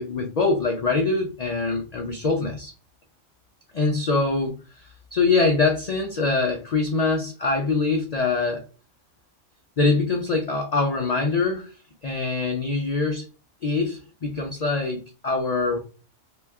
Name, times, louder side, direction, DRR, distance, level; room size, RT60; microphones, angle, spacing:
voice 1, 0.0-2.7 3.7-8.6 9.8-11.7 12.0-13.2 13.6-15.8, left 3 dB, 75° left, 2 dB, 0.3 m, -24 dB
2.8 x 2.2 x 3.4 m, 0.34 s
omnidirectional pair, 1.3 m